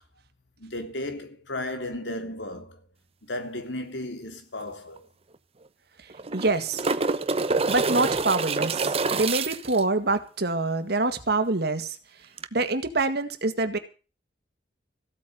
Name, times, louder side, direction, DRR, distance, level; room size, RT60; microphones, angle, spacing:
voice 1, 0.6-2.8 3.2-5.0, left 1 dB, 85° left, 3.2 m, -34 dB
sound 1, 4.6-4.7 5.0-5.1 6.1-9.8 12.4-12.5, right 3 dB, 35° right, 0.9 m, -27 dB
voice 2, 6.0-6.8 7.7-12.0 12.5-13.8, right 3 dB, 60° right, 2.0 m, -26 dB
15.5 x 8.6 x 7.6 m
head